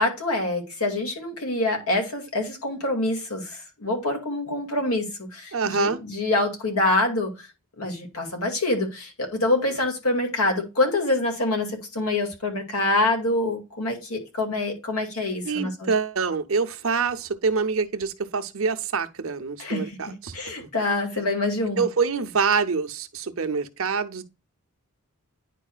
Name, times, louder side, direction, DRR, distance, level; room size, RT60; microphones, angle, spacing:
voice 1, 0.0-7.3 7.8-15.9 19.6-19.9 20.3-21.8, left 2 dB, 85° left, 2.2 m, -26 dB
voice 2, 5.5-6.0 15.4-20.7 21.8-24.2, right 5 dB, 65° right, 0.8 m, -26 dB
9.9 x 4.7 x 2.3 m
head